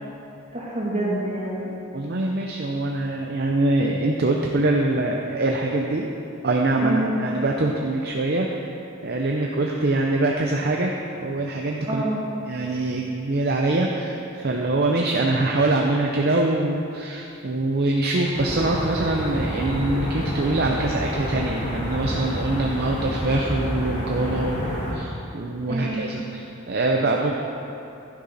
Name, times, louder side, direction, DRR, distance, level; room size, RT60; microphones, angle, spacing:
voice 1, 0.5-1.7 6.8-7.2 9.3-9.5 11.8-12.2 25.7-26.0, right 1 dB, 30° right, -6 dB, 2.6 m, -27 dB
voice 2, 1.9-6.1 6.4-8.7 9.0-12.0 12.5-27.4, right 2 dB, 50° right, 0 dB, 0.7 m, -24 dB
sound 1, 18.3-24.9, equal, 35° left, 2.8 m, -29 dB
11.5 x 9.9 x 4.1 m, 2.8 s
head